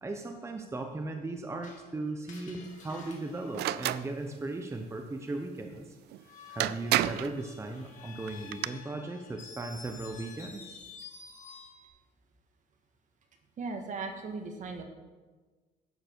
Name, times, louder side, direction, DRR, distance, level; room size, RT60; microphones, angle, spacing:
voice 1, 0.0-6.0 6.5-10.8, right 2 dB, 15° right, 4 dB, 1.0 m, -37 dB
Screech, 1.6-4.5 6.2-11.9, left 5 dB, 50° left, 2.5 m, -50 dB
sound 1, 3.5-4.0 6.1-6.2 6.6-7.3 8.3-8.7, right 14 dB, 75° right, 0.4 m, -29 dB
voice 2, 13.6-14.8, right 4 dB, 50° right, 5 dB, 1.7 m, -37 dB
12.0 x 8.7 x 4.6 m, 1.3 s
cardioid pair, 110°, 17 cm